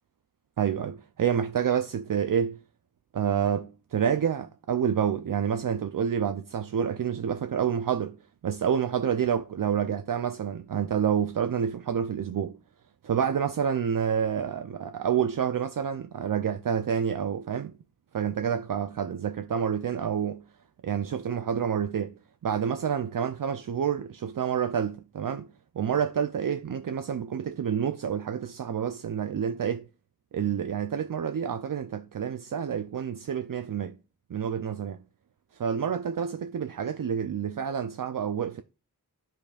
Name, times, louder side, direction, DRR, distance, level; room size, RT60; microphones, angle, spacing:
voice 1, 0.6-2.6 3.1-8.2 8.4-12.6 13.0-17.8 18.1-20.4 20.8-22.1 22.4-25.5 25.7-29.9 30.3-34.0 34.3-35.0 35.5-38.6, right 8 dB, 60° right, 0.5 m, -28 dB
11.5 x 5.1 x 2.4 m
wide cardioid pair, 40°, 37 cm